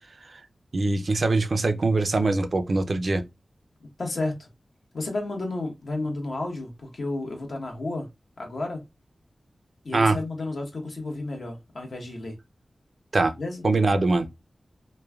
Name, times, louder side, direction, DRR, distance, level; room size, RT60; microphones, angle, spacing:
voice 1, 0.7-3.2 9.9-10.2 13.1-13.3 13.6-14.3, right 3 dB, 60° right, 0.4 m, -23 dB
voice 2, 4.0-4.5 4.9-8.1 8.4-8.8 9.8-12.4 13.4-13.6, left 2 dB, 75° left, 1.0 m, -32 dB
3.1 x 2.2 x 2.2 m
wide cardioid pair, 70°, 0 cm